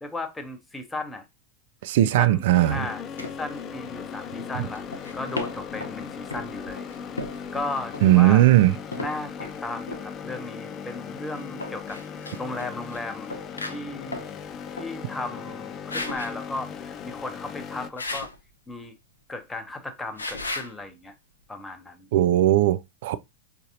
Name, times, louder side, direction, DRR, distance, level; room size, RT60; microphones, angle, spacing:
voice 1, 0.0-1.2 2.2-4.8 5.1-6.9 7.5-8.4 8.9-13.3 13.7-14.3 14.8-18.3 18.7-18.9 19.3-21.1 21.5-22.1, left 2 dB, 10° left, 0.8 m, -35 dB
voice 2, 1.8-2.9 8.0-8.8 22.1-23.2, right 14 dB, 55° right, 0.3 m, -18 dB
sound 1, 2.5-17.9, left 7 dB, 30° left, 0.4 m, -38 dB
sound 2, 3.2-3.4 4.7-5.9 6.3-9.6 9.9-10.0 11.4-13.0 13.3-14.3 14.7-14.9 15.4-15.6 15.9-16.3 18.0-18.4 20.2-20.7, left 2 dB, 75° left, 0.6 m, -35 dB
5.0 x 2.7 x 2.5 m
figure-of-eight pair, 90°, 0 cm